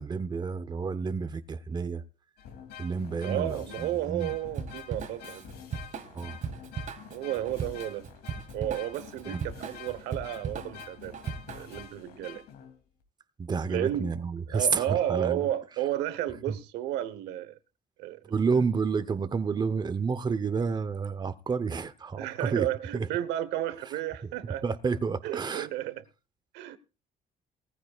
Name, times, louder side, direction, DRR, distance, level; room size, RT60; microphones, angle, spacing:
voice 1, 0.0-2.0 2.8-4.3 6.1-6.4 9.3-9.4 13.4-15.5 16.5-16.6 18.2-22.7 22.9-23.1 24.6-25.7, right 5 dB, 25° right, 0.9 m, -30 dB
sound 1, 2.4-13.0, left 8 dB, 80° left, 2.8 m, -47 dB
voice 2, 3.2-5.4 7.1-8.1 8.5-11.2 11.5-12.4 13.7-14.1 14.5-17.6 18.0-18.3 22.2-24.6 25.2-26.0 26.5-26.8, right 12 dB, 90° right, 1.1 m, -32 dB
Drum kit / Drum, 4.5-11.9, right 6 dB, 50° right, 1.5 m, -38 dB
20.0 x 15.0 x 2.4 m
cardioid pair, 110°, 17 cm